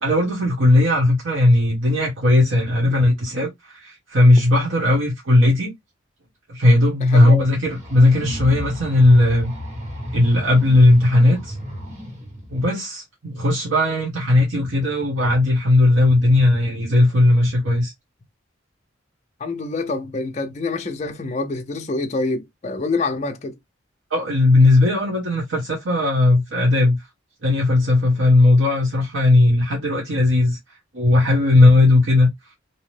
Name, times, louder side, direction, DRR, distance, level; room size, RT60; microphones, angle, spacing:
voice 1, 0.0-5.7 6.5-9.5 10.1-11.6 12.5-17.9 24.1-27.0 27.4-30.6 30.9-32.3, left 2 dB, 80° right, 1.1 m, -17 dB
voice 2, 7.1-7.5 19.4-23.6, left 3 dB, 35° left, 0.4 m, -26 dB
sound 1, 7.6-12.7, equal, 35° right, 0.9 m, -33 dB
2.8 x 2.0 x 3.2 m
head